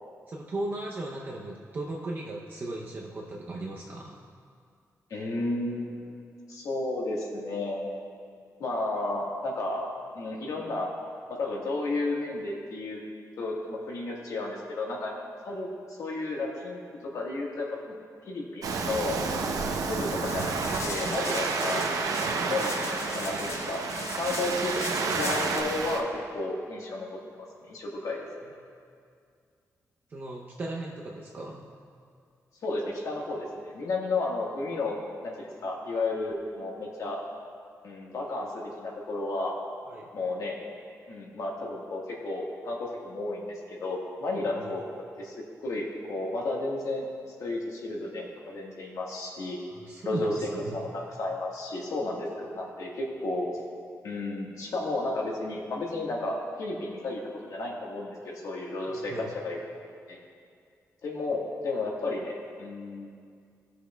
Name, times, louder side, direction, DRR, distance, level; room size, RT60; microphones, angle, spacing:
voice 1, 0.3-4.2 21.5-21.6 30.1-31.7 39.9-40.1 44.4-44.7 49.7-50.8 58.9-59.3, right 2 dB, 35° right, -2 dB, 0.6 m, -37 dB
voice 2, 5.1-8.0 8.6-9.8 10.1-10.9 11.4-13.0 13.4-15.1 15.4-15.7 16.0-16.8 17.1-18.0 18.2-19.1 19.9-20.5 20.8-22.7 23.1-23.8 24.2-24.7 25.1-26.1 26.3-27.2 27.7-28.2 32.6-35.0 35.2-37.2 37.8-39.6 40.1-40.6 41.1-44.8 45.2-45.3 45.6-47.1 47.4-49.6 50.0-50.3 50.7-53.5 54.0-59.1 59.4-59.6 60.1-60.2 61.0-63.1, left 2 dB, 70° left, -2 dB, 1.4 m, -32 dB
Waves surf, 18.6-26.0, right 4 dB, 80° right, 0.7 m, -30 dB
sound 1, 20.3-25.6, left 4 dB, 50° left, 0.7 m, -39 dB
18.0 x 6.4 x 2.2 m, 2.2 s
wide cardioid pair, 175°, 6 cm